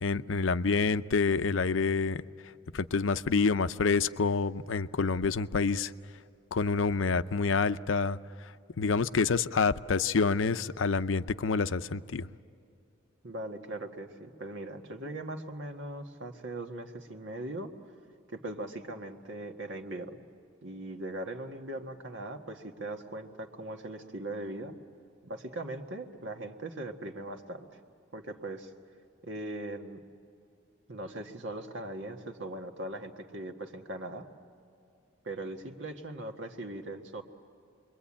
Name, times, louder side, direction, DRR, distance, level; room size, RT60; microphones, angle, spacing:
voice 1, 0.0-2.2 2.7-5.9 6.5-12.3, left 4 dB, 90° left, 13 dB, 0.6 m, -28 dB
voice 2, 13.2-17.7 18.3-20.2 20.6-24.8 25.2-27.8 28.1-28.7 29.2-30.0 30.9-34.3 35.2-37.2, right 1 dB, 75° right, 4 dB, 1.7 m, -40 dB
27.5 x 22.5 x 8.7 m, 2.5 s
head